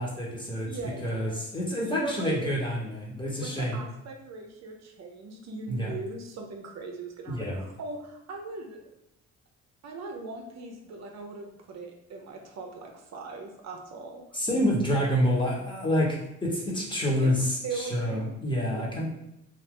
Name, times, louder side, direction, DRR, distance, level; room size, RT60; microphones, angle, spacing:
voice 1, 0.0-0.7 1.0-3.8 5.7-5.9 7.3-7.6 14.3-19.0, equal, 15° left, -4 dB, 1.0 m, -28 dB
voice 2, 0.7-1.4 1.8-2.6 3.3-8.8 9.8-14.4 17.2-18.3 18.7-19.0, right 3 dB, 60° right, 2 dB, 0.6 m, -40 dB
2.6 x 2.4 x 3.6 m, 0.84 s
cardioid pair, 90°, 30 cm